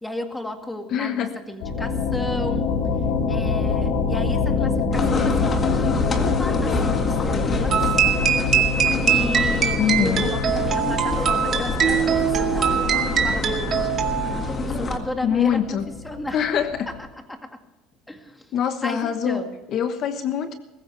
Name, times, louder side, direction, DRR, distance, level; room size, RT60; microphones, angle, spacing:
voice 1, 0.0-2.7 3.3-7.8 9.0-14.0 14.6-15.8 16.0-16.4 17.1-17.5 18.1-18.5 18.8-19.5, left 1 dB, 10° left, 5 dB, 2.0 m, -33 dB
voice 2, 0.9-1.4 9.8-10.3 15.2-15.9 16.3-16.9 18.5-20.5, left 8 dB, 50° left, 9 dB, 1.1 m, -24 dB
sound 1, 1.6-17.0, left 5 dB, 85° left, 3.7 m, -26 dB
sound 2, 4.9-15.0, left 3 dB, 30° left, 1.9 m, -27 dB
sound 3, 7.7-14.5, right 8 dB, 40° right, 2.0 m, -22 dB
21.5 x 14.5 x 3.4 m, 1.1 s
cardioid pair, 125°, 0 cm